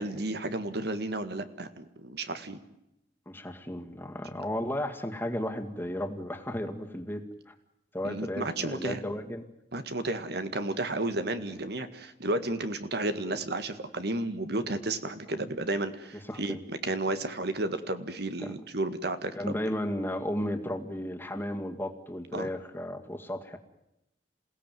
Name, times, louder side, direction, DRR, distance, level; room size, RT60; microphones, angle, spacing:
voice 1, 0.0-2.6 8.0-9.0 9.7-16.6 16.8-19.6 22.3-22.5, right 2 dB, 65° right, 10 dB, 1.9 m, -32 dB
voice 2, 3.3-7.5 7.9-9.5 11.5-11.6 16.3-16.6 18.4-18.5 19.4-23.6, left 1 dB, 10° left, 4 dB, 2.2 m, -34 dB
28.0 x 17.0 x 9.3 m, 0.87 s
head